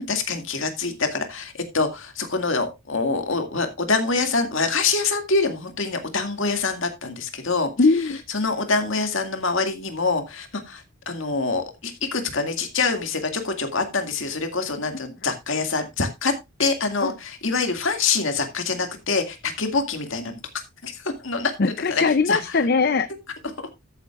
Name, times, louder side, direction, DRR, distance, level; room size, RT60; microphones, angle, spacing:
voice 1, 0.0-7.7 8.3-16.3 16.6-20.4 20.8-21.5 21.9-22.4, left 4 dB, 60° left, 6 dB, 2.1 m, -25 dB
voice 2, 7.8-8.2 17.0-17.1 21.6-23.1, left 4 dB, 45° left, 12 dB, 0.5 m, -20 dB
14.0 x 8.0 x 2.4 m, 0.22 s
head